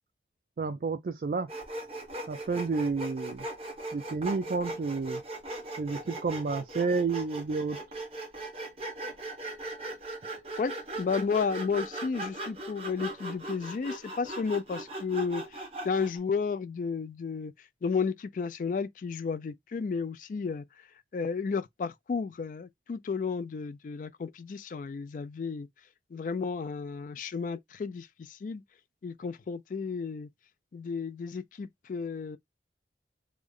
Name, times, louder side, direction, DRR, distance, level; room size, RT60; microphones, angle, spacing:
voice 1, 0.6-1.5 2.3-3.4 3.9-5.2 5.8-7.8, right 4 dB, 50° right, 0.3 m, -30 dB
Sawing, 1.5-16.2, right 2 dB, 35° right, 1.2 m, -39 dB
voice 2, 10.6-17.5 17.8-20.6 21.1-25.7 26.1-28.6 29.0-30.3 30.7-32.4, left 5 dB, 45° left, 0.3 m, -32 dB
3.2 x 2.0 x 3.6 m
head